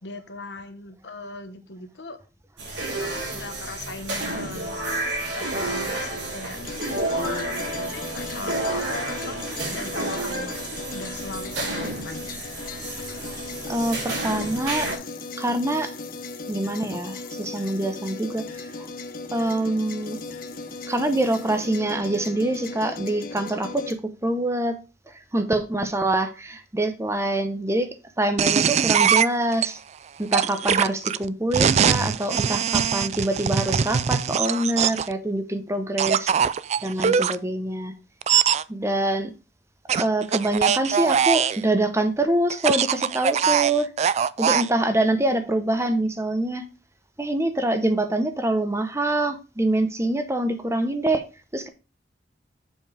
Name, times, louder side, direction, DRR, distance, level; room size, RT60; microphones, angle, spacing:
voice 1, 0.0-2.2 2.9-6.6 7.1-9.4 9.7-12.5, left 2 dB, 70° left, 1.2 m, -38 dB
sound 1, 2.6-14.9, right 2 dB, 80° right, 3.6 m, -30 dB
sound 2, 6.5-23.9, left 3 dB, 50° left, 0.9 m, -37 dB
voice 2, 13.7-14.9 15.4-15.9 16.5-18.7 19.3-20.2 20.9-24.8 25.1-29.8 30.2-36.3 36.8-37.9 38.7-39.3 39.9-43.9 44.4-46.6 47.2-51.2 51.5-51.7, right 1 dB, 15° right, 0.8 m, -25 dB
sound 3, 28.4-29.7 30.3-35.1 36.0-37.4 38.2-38.6 39.9-41.6 42.5-44.7, right 7 dB, 40° right, 0.3 m, -22 dB
7.3 x 5.3 x 4.8 m
head